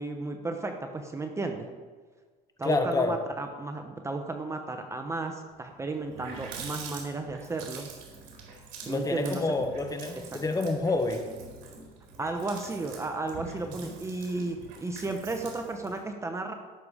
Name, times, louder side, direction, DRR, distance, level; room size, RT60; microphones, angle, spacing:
voice 1, 0.0-1.7 2.6-7.9 8.9-9.7 10.1-10.2 12.2-16.5, right 3 dB, 15° right, 5 dB, 0.9 m, -34 dB
voice 2, 2.6-3.2 8.9-11.2 13.7-13.9, left 3 dB, 20° left, 6 dB, 1.4 m, -28 dB
Water tap faucet, 5.6-5.7 5.9-16.0, right 4 dB, 75° right, 3.6 m, -45 dB
16.5 x 6.8 x 5.0 m, 1.5 s
cardioid pair, 125°, 18 cm